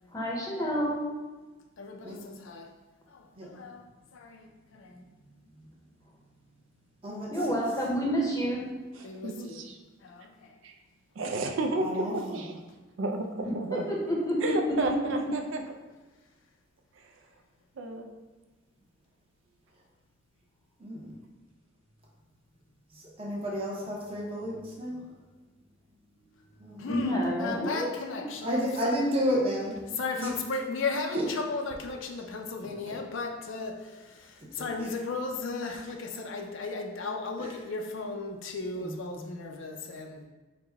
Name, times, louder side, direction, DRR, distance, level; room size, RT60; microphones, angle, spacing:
voice 1, 0.1-1.1 7.3-8.7 13.7-14.7 26.9-27.9, equal, 15° left, -3 dB, 0.7 m, -29 dB
voice 2, 1.8-2.7 3.1-5.1 9.0-9.6 10.0-10.5 26.8-28.7 30.0-40.2, left 3 dB, 75° left, 3 dB, 0.5 m, -36 dB
voice 3, 5.2-5.7 7.0-7.3 11.8-12.1 20.8-21.1 22.9-25.0 26.6-26.9 28.4-29.8 30.2-30.3 31.1-31.3 32.8-33.0 34.6-34.9 37.4-37.5 38.8-39.4, equal, 30° right, -3 dB, 0.8 m, -32 dB
voice 4, 9.2-9.8 10.6-10.8 11.2-12.5 13.0-13.9 14.4-15.6 17.0-17.1 17.8-18.1, right 2 dB, 80° right, 4 dB, 0.4 m, -32 dB
4.8 x 2.1 x 3.4 m, 1.2 s
head